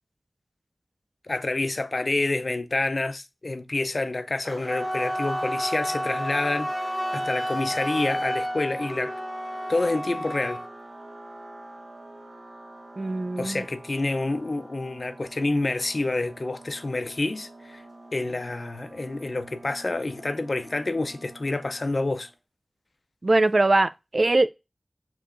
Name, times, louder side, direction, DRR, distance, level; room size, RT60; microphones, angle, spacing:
voice 1, 1.3-9.1 9.7-10.6 13.4-17.8 18.1-22.3, left 2 dB, 65° left, 0.5 m, -28 dB
sound 1, 4.4-22.3, right 2 dB, 80° right, 0.9 m, -44 dB
Wind instrument woodwind instrument, 4.6-10.7, equal, ahead, 0.6 m, -31 dB
voice 2, 13.0-13.6 23.2-24.5, right 2 dB, 65° right, 0.3 m, -22 dB
6.6 x 3.0 x 2.4 m
wide cardioid pair, 45°, 0 cm